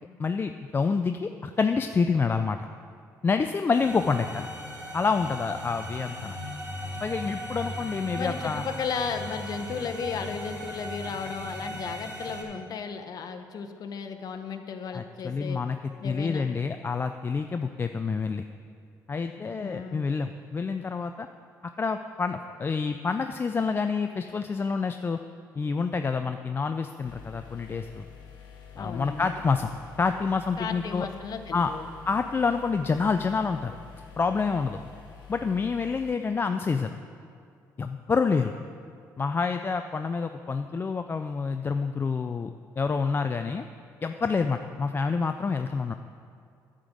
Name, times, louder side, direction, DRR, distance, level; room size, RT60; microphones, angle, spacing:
voice 1, 0.2-2.6 3.2-4.5 4.9-6.4 7.0-8.7 14.9-15.8 16.0-18.4 19.1-21.3 21.8-25.2 25.5-28.1 28.8-29.7 30.0-31.1 31.5-31.7 32.1-33.8 34.2-34.8 35.3-37.0 37.8-38.5 39.2-42.5 42.8-43.7 44.0-45.9, left 5 dB, 30° left, 7 dB, 0.4 m, -27 dB
voice 2, 3.7-4.2 8.1-15.6 16.0-16.5 19.4-20.1 28.7-29.3 30.6-31.9, left 6 dB, 55° left, 6 dB, 0.8 m, -35 dB
sound 1, 3.7-12.4, equal, 25° right, 2.8 m, -37 dB
sound 2, 27.1-36.1, left 7 dB, 80° left, 1.2 m, -48 dB
10.0 x 5.1 x 7.5 m, 2.4 s
cardioid pair, 80°, 8 cm